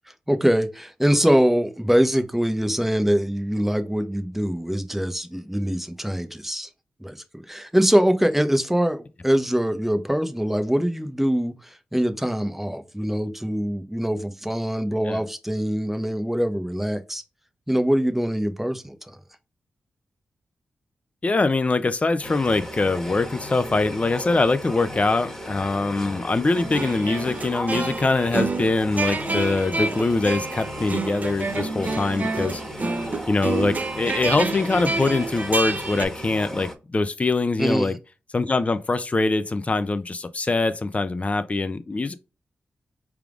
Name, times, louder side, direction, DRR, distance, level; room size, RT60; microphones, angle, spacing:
voice 1, 0.3-6.7 7.0-17.2 17.7-19.0 37.6-37.9, equal, 5° right, 0.8 m, -23 dB
voice 2, 21.2-32.6 33.3-38.0 38.3-42.1, left 3 dB, 35° left, 0.5 m, -23 dB
sound 1, 22.2-36.8, left 1 dB, 10° left, 1.2 m, -36 dB
sound 2, 26.5-36.0, right 3 dB, 40° right, 0.7 m, -28 dB
4.6 x 3.5 x 2.4 m
cardioid pair, 50°, 4 cm